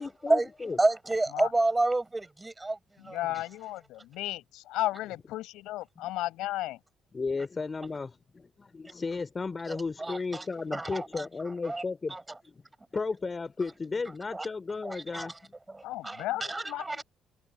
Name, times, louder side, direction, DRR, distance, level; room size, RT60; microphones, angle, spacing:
voice 1, 0.0-0.8 7.1-12.2 12.4-12.6 12.9-15.5, left 4 dB, 30° left, 2.8 m, -34 dB
voice 2, 0.8-2.8 3.0-3.2 9.7-10.4 10.7-11.8 12.1-12.2 14.3-14.5 14.8-15.3 15.7-17.0, right 2 dB, 20° right, 5.9 m, -30 dB
voice 3, 3.0-6.8 15.8-17.0, left 16 dB, 85° left, 7.1 m, -34 dB
supercardioid pair, 70°, 0 cm